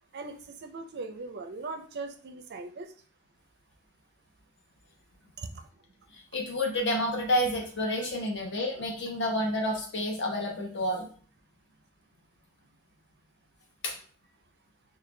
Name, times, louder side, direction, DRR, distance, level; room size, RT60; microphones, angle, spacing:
voice 1, 0.1-2.9 5.4-5.6, right 3 dB, 50° right, 7 dB, 0.4 m, -39 dB
voice 2, 6.1-11.1 13.8-13.9, left 1 dB, 50° left, 0 dB, 1.0 m, -29 dB
4.7 x 2.3 x 3.2 m, 0.43 s
head